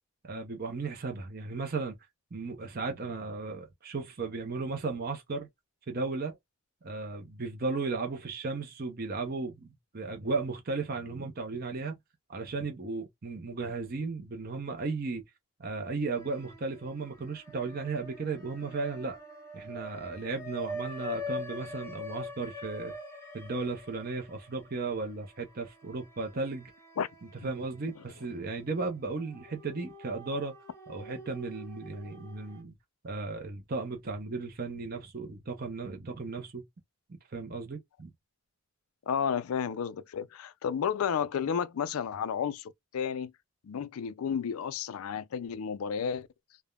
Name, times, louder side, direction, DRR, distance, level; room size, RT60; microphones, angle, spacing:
voice 1, 0.2-2.0 2.3-5.5 5.9-6.4 6.8-12.0 12.3-15.2 15.6-19.2 19.5-22.9 23.3-26.7 27.4-30.6 30.9-32.7 33.0-36.6 37.1-38.1, right 3 dB, 45° right, 0.6 m, -35 dB
sound 1, 16.1-16.9 17.2-27.6 28.0-28.1 29.2-32.6, left 2 dB, 15° left, 0.6 m, -44 dB
voice 2, 39.1-43.3 43.6-46.3, left 7 dB, 75° left, 0.4 m, -32 dB
3.4 x 2.1 x 2.2 m
head